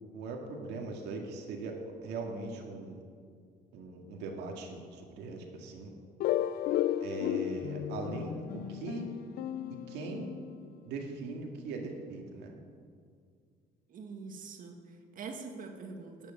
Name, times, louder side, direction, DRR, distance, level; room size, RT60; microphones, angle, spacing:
voice 1, 0.0-3.0 3.7-5.9 7.0-9.0 9.9-10.3 10.8-12.5, right 3 dB, 85° right, 1 dB, 2.1 m, -40 dB
sound 1, 6.2-10.8, left 12 dB, 60° left, 0.4 m, -34 dB
voice 2, 13.9-16.3, right 4 dB, 55° right, 3 dB, 1.9 m, -44 dB
11.0 x 8.4 x 8.7 m, 2.1 s
cardioid pair, 110°, 17 cm